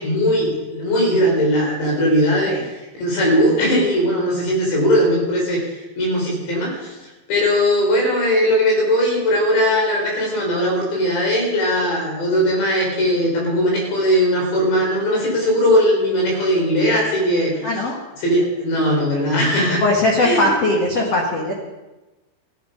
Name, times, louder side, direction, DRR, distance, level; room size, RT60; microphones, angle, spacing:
voice 1, 0.0-2.5 2.9-5.6 6.0-6.9 7.3-17.7 18.2-19.8 20.2-20.5, equal, 65° left, -1 dB, 5.9 m, -19 dB
voice 2, 17.6-18.0 19.8-21.5, left 2 dB, 85° left, -1 dB, 1.3 m, -19 dB
14.5 x 10.5 x 5.3 m, 1.1 s
omnidirectional pair, 5.4 m